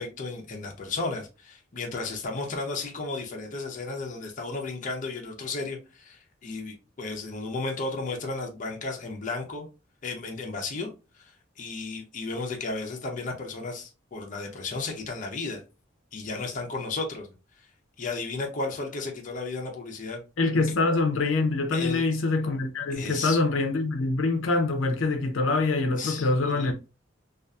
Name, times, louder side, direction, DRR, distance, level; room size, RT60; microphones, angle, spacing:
voice 1, 0.0-9.7 10.0-15.6 16.1-17.3 18.0-20.2 20.5-20.6 21.7-22.1 22.9-23.4 26.0-26.7, left 3 dB, 40° left, 0.6 m, -34 dB
voice 2, 20.4-26.7, left 3 dB, 90° left, 0.5 m, -25 dB
2.6 x 2.4 x 2.3 m
head